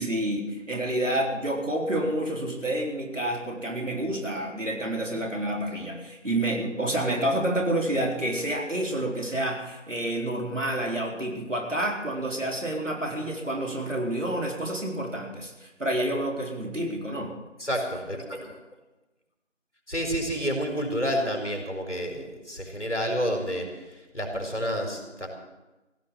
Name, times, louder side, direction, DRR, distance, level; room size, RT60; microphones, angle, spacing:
voice 1, 0.0-17.3, right 1 dB, 80° right, 0 dB, 4.0 m, -29 dB
voice 2, 17.6-18.5 19.9-25.3, equal, 65° left, 2 dB, 4.5 m, -29 dB
16.0 x 10.5 x 7.5 m, 1.1 s
figure-of-eight pair, 180°, 37 cm